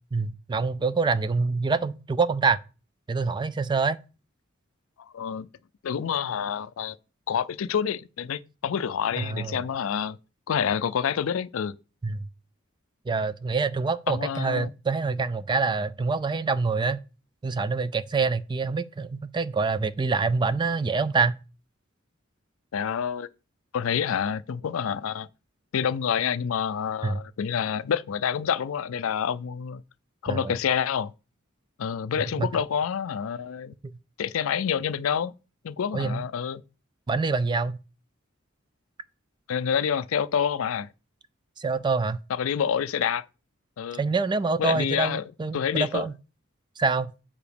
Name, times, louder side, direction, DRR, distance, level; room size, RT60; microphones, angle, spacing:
voice 1, 0.1-2.6 3.1-4.0 9.2-9.6 12.0-12.3 13.1-17.0 17.4-21.4 27.0-27.2 30.3-30.5 32.4-32.5 35.9-36.2 37.1-37.8 41.6-42.2 44.0-46.1 46.8-47.1, right 4 dB, 20° right, 0.3 m, -26 dB
voice 2, 5.0-5.5 5.8-7.0 7.3-10.2 10.5-11.7 14.1-14.7 22.7-23.3 23.7-25.3 25.7-29.8 30.2-31.1 31.8-33.7 34.2-35.3 35.6-36.6 39.5-40.9 42.3-43.2 43.8-44.0 44.6-45.2 45.5-46.1, left 7 dB, 75° left, 0.4 m, -27 dB
7.1 x 4.9 x 5.1 m
head